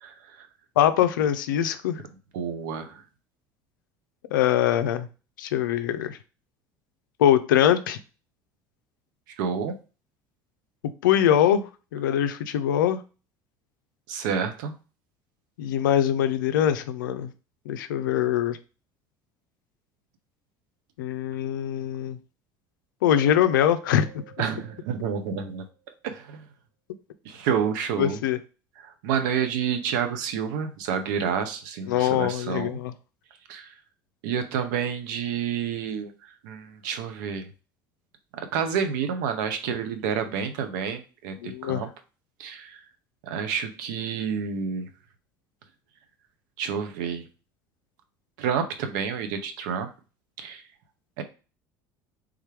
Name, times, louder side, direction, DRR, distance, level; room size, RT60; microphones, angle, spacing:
voice 1, 0.0-0.5 2.3-3.0 9.4-9.7 14.1-14.7 24.4-25.6 26.0-26.4 27.2-28.2 28.8-32.8 33.5-33.7 34.2-36.1 36.4-37.5 38.5-41.9 42.4-42.8 43.2-44.9 46.6-47.2 48.4-49.9 50.4-50.6 51.2-51.3, right 7 dB, 70° right, 0.7 m, -29 dB
voice 2, 0.8-2.0 4.3-5.1 5.4-6.2 7.2-8.0 11.0-11.6 11.9-13.0 15.6-17.3 17.7-18.6 21.0-22.2 23.0-24.1 28.0-28.4 31.9-32.9 41.4-41.8, left 10 dB, 75° left, 0.4 m, -23 dB
Mallet percussion, 23.1-25.6, right 12 dB, ahead, 1.1 m, -48 dB
3.5 x 3.3 x 3.2 m
hypercardioid pair, 70°, 11 cm